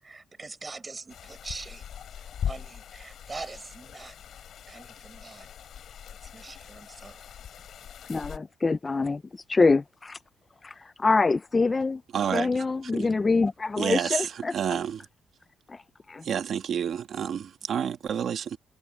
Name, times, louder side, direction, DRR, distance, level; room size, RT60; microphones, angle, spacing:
voice 1, 0.0-1.9 2.2-4.2 4.7-5.5 6.2-7.3, right 3 dB, 20° right, 4.1 m, -43 dB
sound 1, 1.1-8.4, left 9 dB, 55° left, 3.2 m, -40 dB
voice 2, 8.1-10.2 10.6-12.0 12.3-14.5 15.7-15.8 16.1-16.2, left 3 dB, 20° left, 0.3 m, -25 dB
voice 3, 12.1-12.6 12.9-13.1 13.8-15.0 16.2-18.6, right 8 dB, 50° right, 1.6 m, -29 dB
cardioid pair, 155°, 0 cm